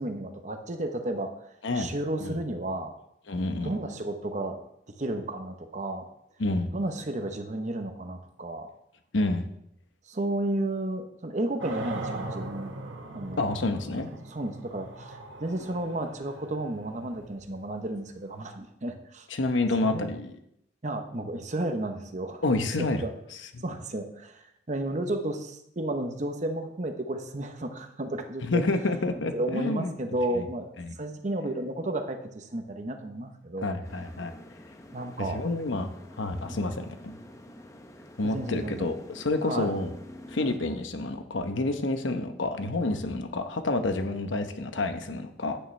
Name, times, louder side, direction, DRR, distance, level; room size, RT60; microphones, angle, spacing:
voice 1, 0.0-1.4 1.7-2.9 3.6-4.6 5.0-6.0 6.7-8.7 10.1-12.7 13.1-13.4 14.1-19.3 19.8-20.1 20.8-22.4 22.8-23.1 23.6-24.4 24.7-28.6 29.3-33.7 34.9-35.4 36.4-36.7 38.2-38.9 39.4-39.7, right 1 dB, 40° right, 6 dB, 0.9 m, -32 dB
voice 2, 3.3-3.8 6.4-6.7 9.1-9.5 13.4-14.1 19.3-20.4 22.4-23.0 23.5-23.6 28.4-29.9 30.3-30.4 30.8-30.9 33.6-34.3 35.2-35.9 36.2-37.1 38.2-39.9 40.3-45.6, left 2 dB, 80° left, 7 dB, 0.9 m, -29 dB
sound 1, 11.6-18.5, right 2 dB, 80° right, 1.4 m, -40 dB
sound 2, 33.8-40.6, left 1 dB, 15° left, 0.7 m, -48 dB
9.9 x 8.8 x 3.3 m, 0.78 s
head